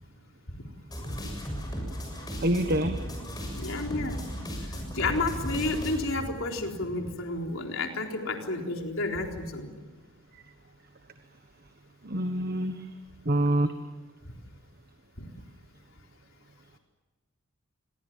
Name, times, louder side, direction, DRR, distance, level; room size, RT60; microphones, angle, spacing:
sound 1, 0.9-6.0, equal, 20° left, 6.8 m, -36 dB
voice 1, 2.4-3.0 12.0-12.8 13.2-13.7, right 1 dB, 45° right, 7 dB, 1.3 m, -26 dB
voice 2, 3.6-4.2 4.7-9.7 15.2-15.3, left 2 dB, 70° left, 2 dB, 4.0 m, -31 dB
29.0 x 23.0 x 7.5 m, 1.3 s
head